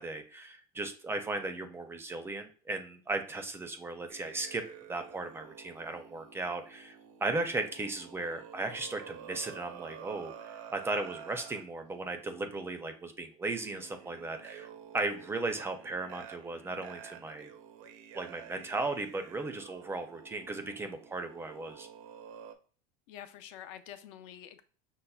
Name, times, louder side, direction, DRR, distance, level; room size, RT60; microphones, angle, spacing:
voice 1, 0.0-4.6 4.9-14.7 14.9-17.5 18.1-21.9, right 2 dB, 15° right, 0.4 m, -36 dB
sound 1, 4.1-11.6 12.5-12.7 13.4-22.5, right 8 dB, 70° right, 0.5 m, -50 dB
voice 2, 23.1-24.6, left 10 dB, 65° left, 0.5 m, -47 dB
5.4 x 2.0 x 2.3 m
supercardioid pair, 125°, 18 cm